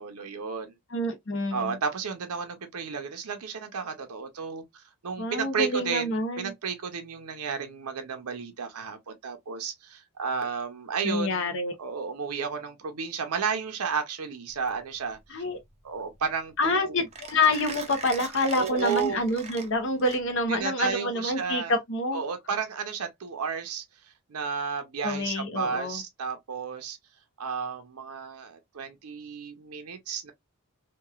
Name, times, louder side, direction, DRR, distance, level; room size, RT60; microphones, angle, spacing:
voice 1, 0.0-0.7 1.5-11.5 11.8-15.4 15.8-17.0 18.6-19.2 20.5-21.7 22.1-23.8 24.3-27.0 27.4-30.3, right 6 dB, 85° right, 0.6 m, -32 dB
voice 2, 0.9-1.8 5.2-6.5 11.0-11.7 15.3-15.6 16.6-22.2 25.0-26.0, left 2 dB, 55° left, 0.7 m, -27 dB
Mechanisms, 14.5-20.6, right 5 dB, 30° right, 0.5 m, -42 dB
2.9 x 2.3 x 2.3 m
head